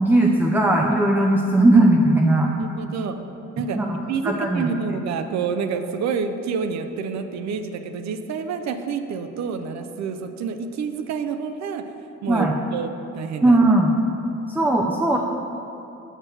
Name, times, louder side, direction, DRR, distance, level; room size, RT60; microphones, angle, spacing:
voice 1, 0.0-2.5 3.8-3.9 4.2-4.7 12.3-12.5 13.4-13.9 14.5-15.2, right 1 dB, 5° right, 0 dB, 0.3 m, -18 dB
voice 2, 2.6-3.1 3.6-3.8 4.1-11.8 12.2-12.9 13.1-13.6, right 6 dB, 65° right, 8 dB, 0.5 m, -28 dB
6.5 x 6.1 x 3.2 m, 2.8 s
cardioid pair, 90°, 30 cm